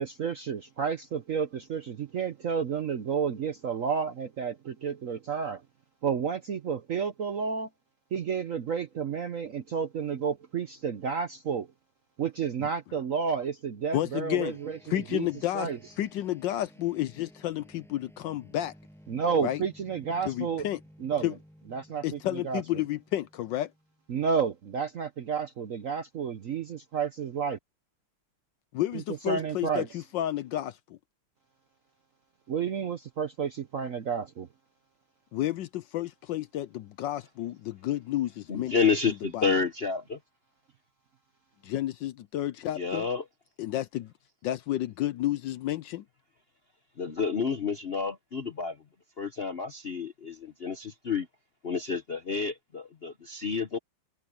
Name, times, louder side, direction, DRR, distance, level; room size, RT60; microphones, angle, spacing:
voice 1, 0.0-5.6 6.0-7.7 8.1-11.7 12.2-15.3 15.5-15.8 19.1-20.7 21.0-21.3 21.7-22.6 24.1-27.6 28.9-29.9 32.5-34.5, right 6 dB, 60° right, 0.8 m, -31 dB
voice 2, 13.9-14.6 14.9-15.7 16.0-18.7 19.4-19.6 20.2-20.8 21.2-21.3 22.0-23.7 28.7-31.0 35.3-39.5 41.6-43.1 43.6-44.1 44.4-46.0, left 13 dB, 75° left, 1.1 m, -31 dB
sound 1, 14.3-24.1, equal, ahead, 7.7 m, -56 dB
voice 3, 38.5-40.2 42.8-43.2 47.0-48.8 49.2-51.3 51.6-53.8, left 5 dB, 50° left, 0.7 m, -29 dB
omnidirectional pair, 2.3 m